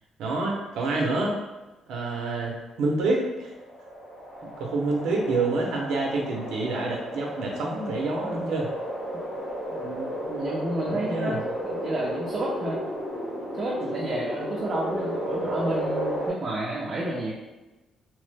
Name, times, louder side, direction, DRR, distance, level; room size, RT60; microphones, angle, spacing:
voice 1, 0.2-1.4 1.9-3.5 4.6-8.7 10.9-11.4, right 3 dB, 90° right, -1 dB, 0.5 m, -27 dB
sound 1, 3.2-16.3, equal, 80° left, 1.0 m, -33 dB
voice 2, 9.7-12.8 13.5-17.3, right 1 dB, 35° right, -5 dB, 0.5 m, -31 dB
2.9 x 2.0 x 3.2 m, 1.1 s
cardioid pair, 140°, 0 cm